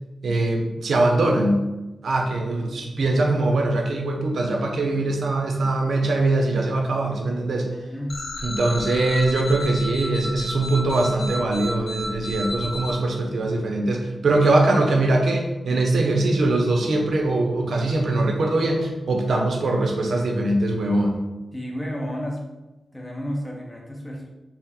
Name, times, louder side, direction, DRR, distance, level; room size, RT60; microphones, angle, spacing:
voice 1, 0.2-1.6 2.0-7.7 8.4-21.2, right 2 dB, 80° right, 1 dB, 0.5 m, -22 dB
voice 2, 7.6-8.2 21.5-22.4 22.9-24.3, equal, 20° left, -1 dB, 0.5 m, -32 dB
sound 1, 8.1-12.9, left 1 dB, 75° left, 0.4 m, -32 dB
2.8 x 2.0 x 3.6 m, 1.1 s
wide cardioid pair, 95°, 0 cm